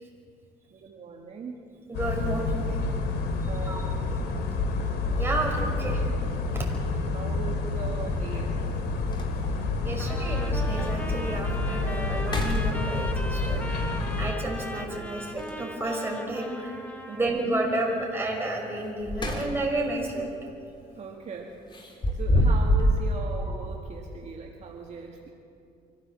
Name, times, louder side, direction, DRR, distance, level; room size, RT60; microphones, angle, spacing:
voice 1, 0.7-1.6 3.5-3.9 7.1-8.8 17.1-17.3 21.0-21.6 21.9-25.3, right 5 dB, 45° right, 0 dB, 2.0 m, -39 dB
sound 1, 1.9-14.3, left 3 dB, 75° left, 2.5 m, -28 dB
voice 2, 1.9-2.8 3.7-3.8 5.2-6.0 6.5-6.7 9.8-13.6 14.2-16.7 17.1-20.2, right 2 dB, 15° right, -1 dB, 5.8 m, -31 dB
sound 2, 6.5-6.6 8.3-8.4 8.8-8.9 9.1-9.7 10.2-10.3 10.9-11.0 11.4-11.7 12.2-13.3 15.4-16.0 18.8-19.8 20.2-20.4 21.7-23.0, equal, 25° left, 3.1 m, -27 dB
Trumpet, 10.0-17.4, left 1 dB, 10° left, 1.7 m, -39 dB
24.5 x 15.5 x 7.5 m, 2.6 s
cardioid pair, 110°, 17 cm